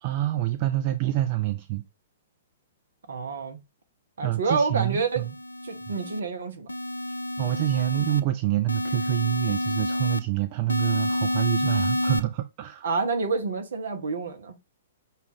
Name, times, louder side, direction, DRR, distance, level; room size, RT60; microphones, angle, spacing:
voice 1, 0.0-1.8 4.2-5.3 5.9-6.0 7.4-12.9, right 15 dB, 35° right, 0.3 m, -27 dB
voice 2, 3.1-3.6 4.2-5.3 5.6-6.7 12.8-14.6, right 4 dB, 60° right, 0.8 m, -28 dB
sound 1, 5.1-6.2 6.7-8.2 8.7-10.2 10.7-12.2, left 1 dB, 80° left, 0.3 m, -28 dB
5.6 x 2.4 x 3.5 m
figure-of-eight pair, 110°, 0 cm